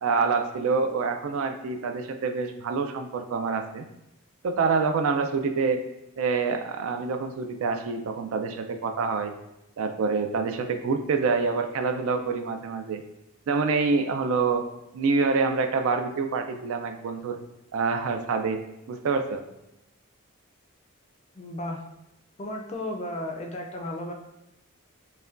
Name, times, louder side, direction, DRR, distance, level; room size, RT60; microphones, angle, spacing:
voice 1, 0.0-3.9 4.4-5.8 6.2-9.3 9.8-13.0 13.5-14.6 14.9-17.4 17.7-18.6 18.9-19.4, right 4 dB, 75° right, 6 dB, 0.3 m, -26 dB
voice 2, 21.4-21.8 22.4-24.1, left 1 dB, 30° left, 1 dB, 0.4 m, -34 dB
5.3 x 2.2 x 2.4 m, 0.89 s
head